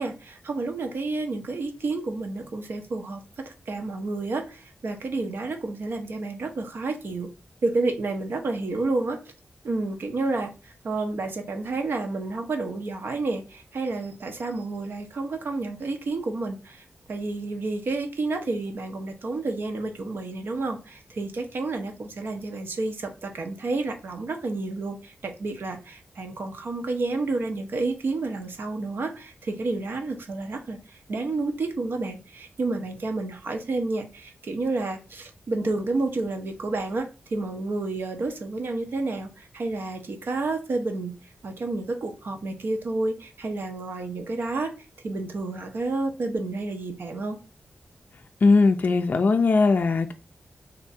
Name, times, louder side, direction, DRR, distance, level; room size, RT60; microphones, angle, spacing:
voice 1, 0.0-7.3 7.6-9.2 9.6-10.5 10.8-41.1 41.4-44.7 45.0-47.4, right 3 dB, 65° right, 0.9 m, -30 dB
voice 2, 48.4-50.1, left 3 dB, 50° left, 0.4 m, -19 dB
3.5 x 2.7 x 4.1 m
wide cardioid pair, 100°, 4 cm